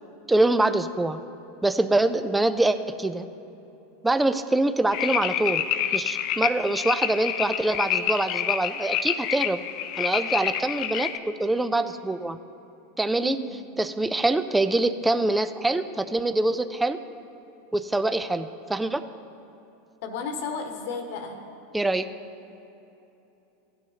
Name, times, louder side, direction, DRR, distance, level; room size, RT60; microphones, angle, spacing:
voice 1, 0.3-1.2 1.6-3.2 4.0-5.6 5.9-9.6 10.0-12.4 13.0-13.4 13.8-17.0 17.7-19.0 21.7-22.1, right 2 dB, 10° right, 10 dB, 0.4 m, -24 dB
sound 1, 4.9-11.2, left 10 dB, 55° left, 0.4 m, -28 dB
voice 2, 13.2-13.6 20.0-21.4, left 4 dB, 70° left, 4 dB, 1.3 m, -33 dB
16.0 x 9.1 x 2.8 m, 2.9 s
supercardioid pair, 120°, 0 cm